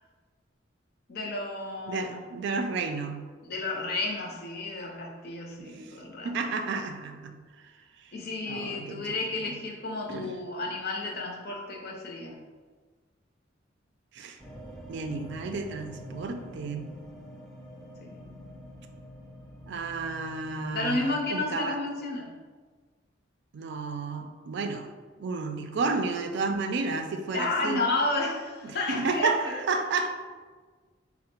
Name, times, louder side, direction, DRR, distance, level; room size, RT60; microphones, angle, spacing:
voice 1, 1.1-2.2 3.4-6.3 8.1-12.4 18.0-18.1 20.7-22.3 27.3-29.6, left 2 dB, 55° left, 0 dB, 0.6 m, -32 dB
voice 2, 1.9-3.2 6.2-7.3 8.4-9.2 10.1-10.3 14.1-14.4 14.9-16.9 19.7-21.8 23.5-24.9 25.2-27.8 28.9-30.1, right 4 dB, 65° right, 6 dB, 0.4 m, -31 dB
sound 1, 14.4-21.2, equal, ahead, 0.5 m, -46 dB
3.8 x 2.0 x 4.3 m, 1.4 s
head